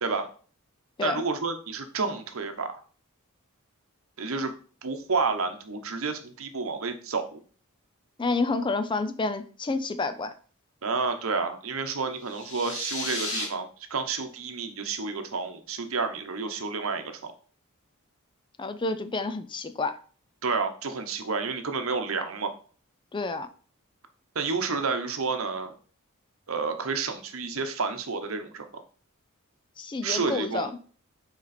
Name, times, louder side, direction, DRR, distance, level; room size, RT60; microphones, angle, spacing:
voice 1, 1.0-2.8 4.2-4.5 4.8-7.4 10.8-17.3 20.4-22.5 24.3-25.7 26.5-28.8 30.0-30.7, right 4 dB, 70° right, 7 dB, 0.9 m, -30 dB
voice 2, 8.2-10.3 18.6-20.0 23.1-23.5 29.8-30.7, left 3 dB, 20° left, 11 dB, 0.4 m, -29 dB
sound 1, 12.2-13.4, left 2 dB, 60° left, 2.0 m, -33 dB
6.7 x 4.4 x 4.2 m, 0.41 s
head